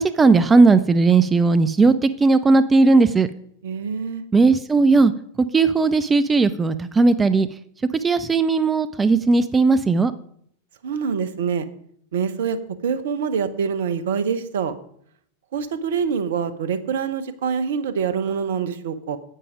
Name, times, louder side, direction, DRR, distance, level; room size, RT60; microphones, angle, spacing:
voice 1, 0.0-3.3 4.3-5.1 5.5-7.5 7.9-10.1, right 3 dB, 15° right, 13 dB, 0.5 m, -17 dB
voice 2, 3.6-4.2 10.8-11.6 12.1-12.6 12.8-14.8 15.5-19.2, right 6 dB, 60° right, 12 dB, 1.0 m, -25 dB
9.9 x 8.4 x 5.1 m, 0.66 s
figure-of-eight pair, 90°, 0 cm